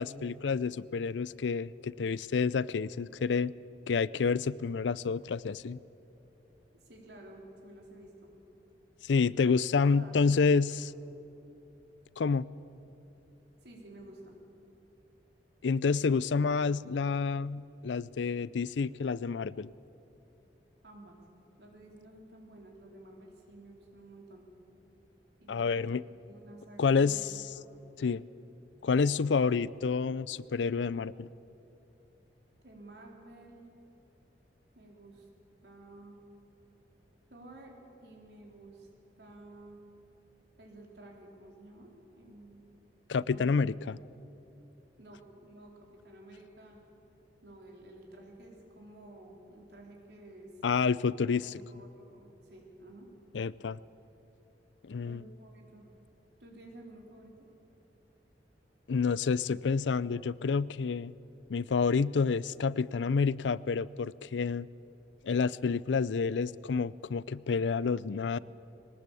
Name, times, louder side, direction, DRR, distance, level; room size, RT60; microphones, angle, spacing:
voice 1, 0.0-3.5 3.9-5.8 9.0-10.9 12.2-12.5 15.6-19.7 25.5-26.0 26.8-27.3 28.0-28.2 28.8-31.3 43.1-44.0 50.6-51.6 53.3-53.8 54.8-55.2 58.9-61.1 61.5-64.7 65.2-68.4, left 5 dB, 90° left, 20 dB, 0.5 m, -29 dB
voice 2, 6.7-8.3 9.3-9.5 9.9-10.4 10.7-10.8 13.6-14.4 20.8-21.2 21.6-24.5 25.4-25.8 26.3-27.2 27.5-27.7 32.6-33.7 34.7-35.3 35.6-36.2 37.3-37.7 38.0-38.9 39.2-39.8 40.6-42.6 43.3-43.6 45.0-46.8 47.4-50.5 51.3-53.1 55.0-55.9 56.4-57.5, right 2 dB, 65° right, 0 dB, 4.0 m, -52 dB
21.5 x 18.5 x 8.4 m, 2.9 s
head